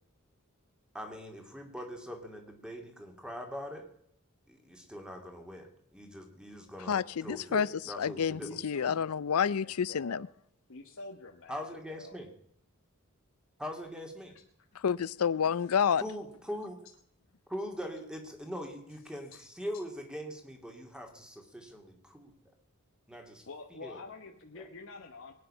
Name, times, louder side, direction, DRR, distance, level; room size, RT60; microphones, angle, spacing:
voice 1, 0.9-3.9 4.5-8.6 11.5-12.3 13.6-14.4 16.0-16.8 17.5-22.3 23.1-23.5 23.8-24.0 24.6-24.7, equal, 5° right, 2.5 m, -42 dB
voice 2, 6.9-7.7 8.0-10.3 14.8-16.0, left 7 dB, 85° left, 0.5 m, -29 dB
voice 3, 8.4-10.2 10.7-12.2 14.3-14.4 19.3-19.5 23.5-25.3, left 3 dB, 65° left, 1.2 m, -47 dB
23.5 x 9.7 x 5.5 m
head